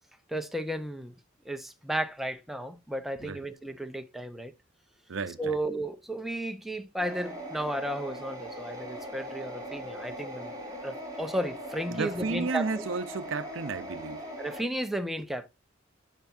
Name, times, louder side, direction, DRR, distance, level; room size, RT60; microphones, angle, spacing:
voice 1, 0.3-1.1 1.5-4.5 5.4-10.5 10.8-12.8 14.4-15.5, right 1 dB, ahead, 0.6 m, -34 dB
voice 2, 5.1-5.5 11.9-14.3, right 4 dB, 70° right, 0.6 m, -33 dB
sound 1, 7.0-14.6, equal, 20° right, 3.3 m, -40 dB
10.5 x 5.8 x 2.6 m
head